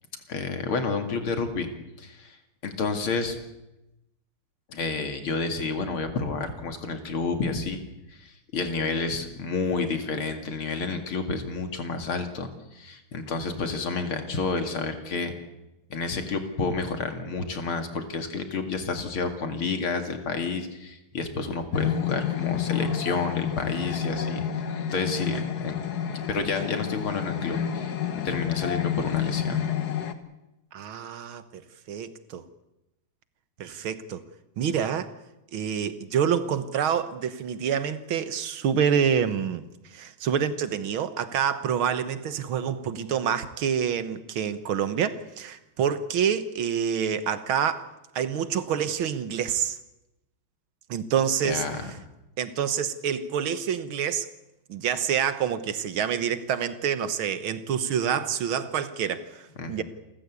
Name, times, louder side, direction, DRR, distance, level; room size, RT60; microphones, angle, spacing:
voice 1, 0.3-1.7 2.0-2.4 2.6-3.4 4.7-7.8 8.1-15.3 15.9-24.4 24.9-25.8 26.1-27.9 28.2-29.6 51.4-51.9 59.6-59.8, left 4 dB, 75° left, 3.2 m, -30 dB
sound 1, 21.7-30.1, left 8 dB, 50° left, 1.7 m, -29 dB
voice 2, 30.7-32.5 33.6-34.2 34.6-35.1 35.5-39.6 39.9-47.9 48.2-49.8 50.9-51.7 52.4-54.3 54.7-59.8, right 8 dB, 75° right, 2.0 m, -27 dB
28.5 x 14.0 x 8.3 m
omnidirectional pair, 2.3 m